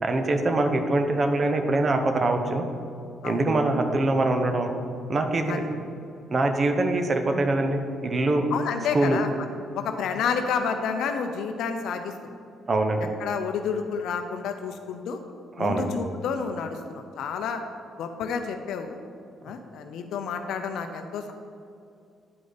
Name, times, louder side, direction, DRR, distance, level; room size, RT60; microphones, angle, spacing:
voice 1, 0.0-2.6 3.2-4.7 5.1-5.6 6.3-8.5 8.9-9.2 12.7-13.0 15.6-15.9, right 2 dB, 40° right, 6 dB, 0.9 m, -23 dB
voice 2, 8.5-9.3 9.7-12.1 13.0-15.2 15.6-17.6 18.0-19.0 19.4-21.3, left 6 dB, 75° left, 6 dB, 0.5 m, -30 dB
9.5 x 5.0 x 4.0 m, 2.4 s
cardioid pair, 80°, 0 cm